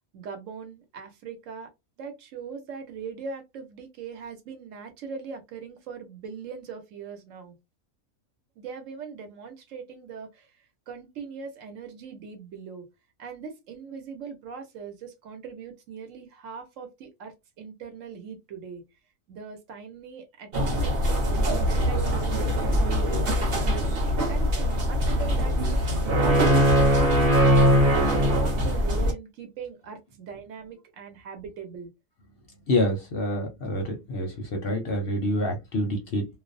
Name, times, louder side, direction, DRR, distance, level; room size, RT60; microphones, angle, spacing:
voice 1, 0.1-1.7 2.0-7.5 8.6-10.5 10.9-12.8 13.2-18.8 19.3-24.0 24.3-31.9, right 6 dB, 70° right, 1.1 m, -40 dB
sound 1, 20.5-29.1, equal, 50° right, 1.0 m, -22 dB
voice 2, 32.7-36.3, left 1 dB, 60° left, 0.7 m, -27 dB
2.5 x 2.0 x 2.5 m
omnidirectional pair, 1.4 m